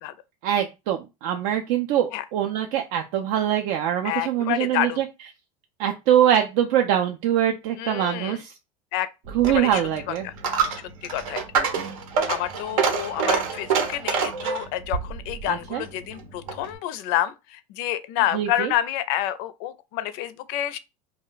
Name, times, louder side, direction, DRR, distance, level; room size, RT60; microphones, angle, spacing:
voice 1, 0.4-5.1 5.8-8.5 9.3-10.3 15.5-15.8 18.3-18.7, right 10 dB, 60° right, 0.4 m, -23 dB
voice 2, 4.0-5.0 7.8-8.4 8.9-9.1 9.5-10.3 11.0-11.4 12.3-20.8, left 13 dB, 60° left, 0.4 m, -28 dB
Coin (dropping), 9.2-16.8, right 6 dB, 80° right, 0.8 m, -27 dB
2.2 x 2.1 x 3.8 m
supercardioid pair, 105°, 17 cm